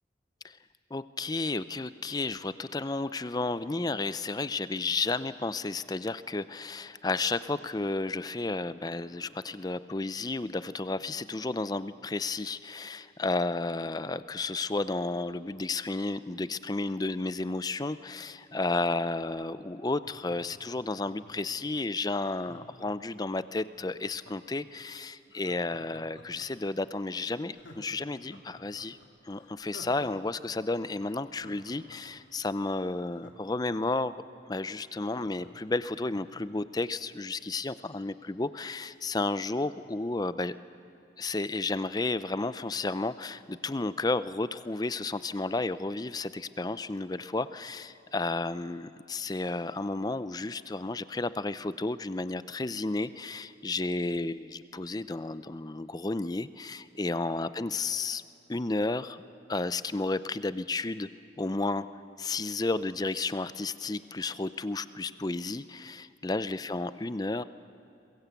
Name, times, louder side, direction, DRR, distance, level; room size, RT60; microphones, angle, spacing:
voice 1, 0.9-29.0 29.2-40.5 41.2-58.2 58.5-59.2 59.5-61.1 61.4-61.9 62.2-67.4, left 3 dB, 20° left, 14 dB, 0.5 m, -32 dB
Laughter, 19.8-21.5 22.4-24.6 25.3-26.7 27.1-27.2 27.5-30.3 30.6-30.7 31.1-34.0 34.4-34.5 34.7-36.5 36.8-36.9, left 1 dB, 85° left, 2.4 m, -52 dB
22.5 x 21.5 x 8.2 m, 2.6 s
head